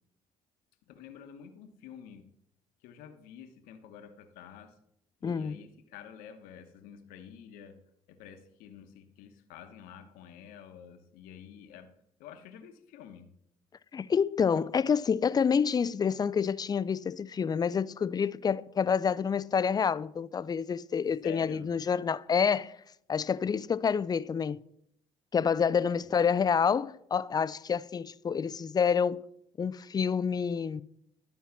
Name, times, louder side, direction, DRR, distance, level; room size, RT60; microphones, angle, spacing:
voice 1, 0.9-2.3 2.8-4.8 5.2-7.8 8.1-11.9 12.2-13.3 21.2-21.7 26.3-26.4 30.3-30.4, left 8 dB, 80° left, 1.0 m, -49 dB
voice 2, 5.2-5.6 13.9-22.8 23.1-24.6 25.3-29.3 29.6-30.8, left 6 dB, 30° left, 0.4 m, -28 dB
12.0 x 4.6 x 5.9 m
supercardioid pair, 65°, 14 cm